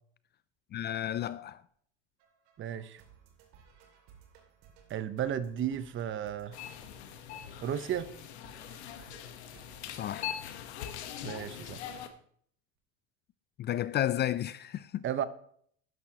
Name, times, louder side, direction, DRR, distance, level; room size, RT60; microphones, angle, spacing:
voice 1, 0.7-1.6 9.9-10.3 13.6-15.0, left 12 dB, 35° left, 0.4 m, -32 dB
sound 1, 2.2-10.8, right 7 dB, 65° right, 2.6 m, -60 dB
voice 2, 2.6-3.0 4.9-6.6 7.6-8.1 11.2-11.8 15.0-15.3, right 9 dB, 40° right, 0.9 m, -34 dB
sound 2, 6.5-12.1, left 10 dB, 85° left, 1.2 m, -42 dB
12.5 x 10.5 x 2.9 m
hypercardioid pair, 90°, 32 cm